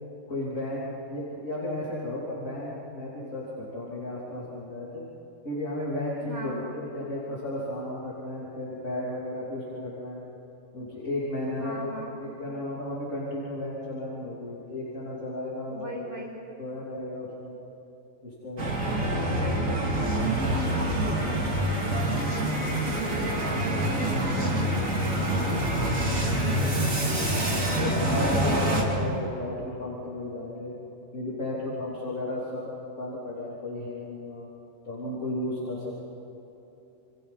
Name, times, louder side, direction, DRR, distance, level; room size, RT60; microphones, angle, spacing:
voice 1, 0.3-5.1 5.5-10.2 10.7-16.1 16.6-17.6 18.2-18.8 27.8-30.7 31.1-32.6 33.0-34.5 34.8-36.0, left 1 dB, 70° left, -8 dB, 3.7 m, -34 dB
voice 2, 6.2-6.7 11.6-12.2 15.7-16.4 19.2-23.5 24.1-26.8 27.4-28.6, equal, 60° right, -4 dB, 4.4 m, -41 dB
sound 1, 18.6-28.8, right 1 dB, 80° right, 3.4 m, -26 dB
28.0 x 27.0 x 4.2 m, 3.0 s
omnidirectional pair, 1.4 m